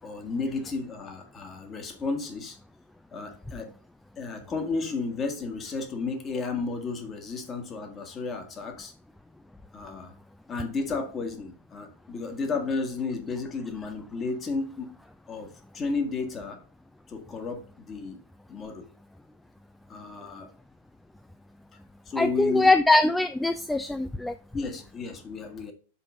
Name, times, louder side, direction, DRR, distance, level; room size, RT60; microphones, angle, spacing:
voice 1, 0.0-2.6 3.1-3.7 4.2-8.9 9.7-10.1 10.5-14.9 15.3-16.6 17.1-18.2 18.5-18.8 19.9-20.5 22.1-22.7 24.5-25.7, left 4 dB, 25° left, 4 dB, 1.6 m, -33 dB
voice 2, 22.2-24.4, left 2 dB, 5° left, 10 dB, 0.4 m, -22 dB
5.7 x 4.5 x 5.1 m, 0.39 s
figure-of-eight pair, 95°, 0 cm